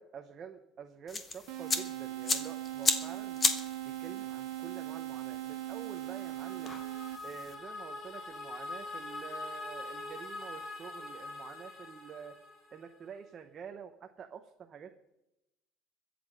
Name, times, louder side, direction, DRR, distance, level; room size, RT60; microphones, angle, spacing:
voice 1, 0.0-3.4 3.8-6.8 7.2-12.4 12.7-15.1, right 7 dB, 30° right, 5 dB, 0.8 m, -48 dB
sound 1, 1.1-7.5, left 3 dB, 20° left, 1.2 m, -36 dB
sound 2, 1.5-7.5, right 14 dB, 70° right, 0.6 m, -40 dB
sound 3, 5.9-13.0, left 2 dB, 40° left, 6.8 m, -44 dB
22.0 x 7.8 x 5.2 m, 0.93 s
cardioid pair, 155°, 0 cm